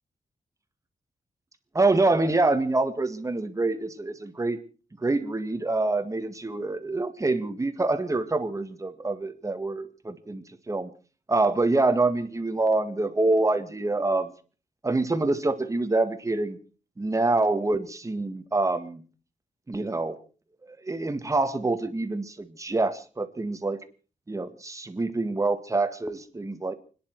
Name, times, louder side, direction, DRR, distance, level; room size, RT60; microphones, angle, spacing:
voice 1, 1.7-4.6 5.0-10.9 11.3-14.3 14.8-16.6 17.0-19.0 19.7-20.2 20.7-23.8 24.3-26.7, right 2 dB, 20° right, 9 dB, 1.8 m, -26 dB
29.5 x 10.5 x 4.7 m, 0.38 s
wide cardioid pair, 125°, 15 cm